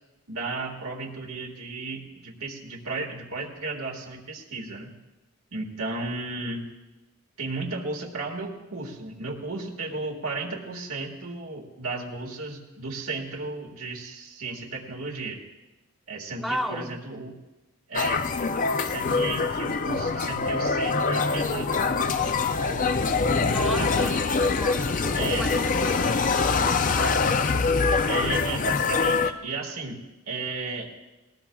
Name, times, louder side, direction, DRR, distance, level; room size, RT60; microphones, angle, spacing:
voice 1, 0.3-4.9 5.5-6.6 7.4-15.4 16.1-17.3 17.9-18.3 18.8-22.9 23.4-24.3 25.2-25.5 28.1-30.0 30.3-30.9, right 3 dB, 85° right, -1 dB, 1.9 m, -34 dB
voice 2, 16.4-16.9 23.5-27.8, equal, ahead, 0 dB, 1.0 m, -35 dB
sound 1, 17.9-29.3, left 4 dB, 40° left, 0.5 m, -24 dB
19.0 x 18.5 x 2.3 m, 1.1 s
head